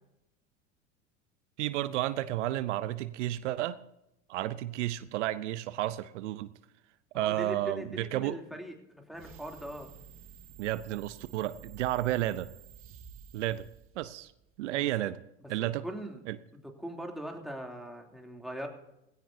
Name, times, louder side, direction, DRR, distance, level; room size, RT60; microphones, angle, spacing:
voice 1, 1.6-3.8 4.3-6.5 7.1-8.4 10.6-12.5 13.3-13.7 14.0-14.3 14.6-15.2 15.5-15.8 16.3-16.4, right 14 dB, 75° right, 15 dB, 0.8 m, -32 dB
voice 2, 7.1-9.9 14.7-14.8 15.6-16.2 16.8-18.7, right 1 dB, ahead, 1 dB, 3.0 m, -40 dB
sound 1, 9.1-14.6, right 7 dB, 35° right, 1.8 m, -52 dB
18.5 x 16.5 x 2.8 m, 0.86 s
hypercardioid pair, 80°, 36 cm